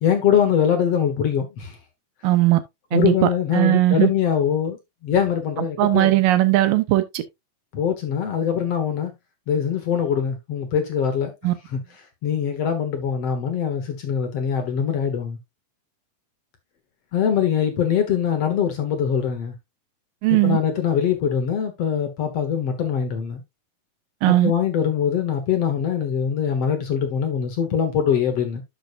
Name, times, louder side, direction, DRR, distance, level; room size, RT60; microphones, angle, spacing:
voice 1, 0.0-1.8 2.9-4.8 5.0-6.1 7.7-9.1 9.5-11.3 11.7-11.8 12.2-15.4 17.1-19.5 20.4-23.4 24.4-28.6, left 8 dB, 60° left, 1.9 m, -22 dB
voice 2, 2.2-2.6 2.9-4.1 5.8-7.2 11.4-11.5 20.2-20.6 24.2-24.5, right 16 dB, 80° right, 2.5 m, -18 dB
11.5 x 6.4 x 2.5 m
omnidirectional pair, 4.0 m